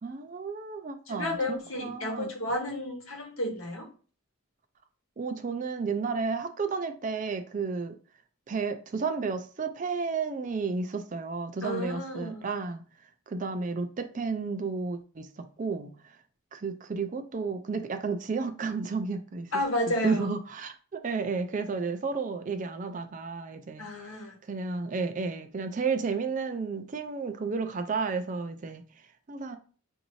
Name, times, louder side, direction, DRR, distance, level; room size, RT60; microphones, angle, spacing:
voice 1, 0.0-2.3 5.2-8.0 8.5-12.8 13.3-16.1 16.5-19.5 19.9-23.9 24.4-28.8 29.3-29.6, right 4 dB, 35° right, 0.4 m, -32 dB
voice 2, 1.1-3.9 11.6-12.5 19.5-20.3 23.8-24.3, left 1 dB, 65° left, 1.1 m, -32 dB
5.8 x 2.7 x 3.0 m
head